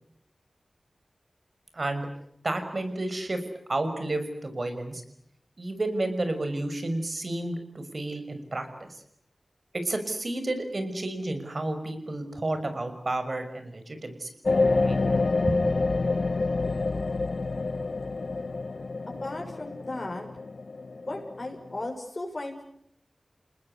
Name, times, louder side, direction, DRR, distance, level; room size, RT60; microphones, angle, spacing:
voice 1, 1.7-2.1 2.4-3.4 3.7-5.0 5.6-9.0 9.7-14.3 14.8-15.0 15.4-15.7, right 2 dB, 55° right, 8 dB, 5.9 m, -31 dB
sound 1, 14.4-21.9, left 3 dB, 70° left, 1.2 m, -28 dB
voice 2, 19.2-20.3 21.1-22.6, left 2 dB, 45° left, 1 dB, 6.3 m, -36 dB
29.5 x 20.0 x 9.7 m, 0.74 s
wide cardioid pair, 55°, 0 cm